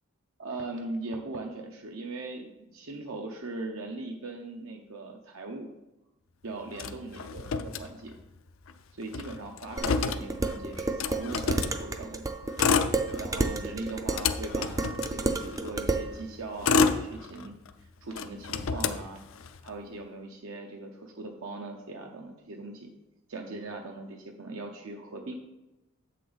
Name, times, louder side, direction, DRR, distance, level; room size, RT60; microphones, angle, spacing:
voice 1, 0.4-5.7 6.4-8.1 8.9-12.4 13.2-19.2 19.6-22.9 23.3-25.3, right 2 dB, 75° right, 2 dB, 0.7 m, -40 dB
Motor vehicle (road), 6.8-8.4 8.7-8.8 9.0-11.8 12.4-13.5 13.9-15.7 16.3-17.7 18.1-19.7, left 5 dB, 75° left, 0.5 m, -29 dB
Dishes pots and pans, 9.8-16.1, right 2 dB, 15° right, 0.4 m, -31 dB
7.8 x 6.4 x 4.0 m, 0.98 s
head